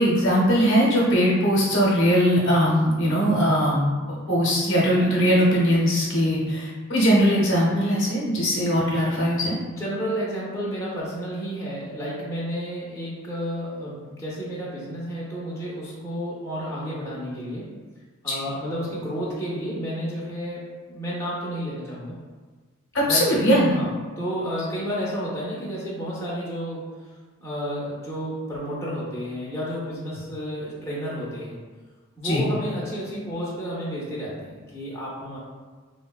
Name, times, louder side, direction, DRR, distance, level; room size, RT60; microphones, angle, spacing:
voice 1, 0.0-9.6 18.3-18.4 22.9-23.7 32.2-32.4, equal, 60° left, -4 dB, 0.7 m, -20 dB
voice 2, 9.7-17.7 18.2-20.6 20.9-22.2 23.0-23.3 23.6-26.9 27.4-31.5 32.2-35.4, equal, 15° left, -7 dB, 0.5 m, -31 dB
3.5 x 2.1 x 2.3 m, 1.4 s
head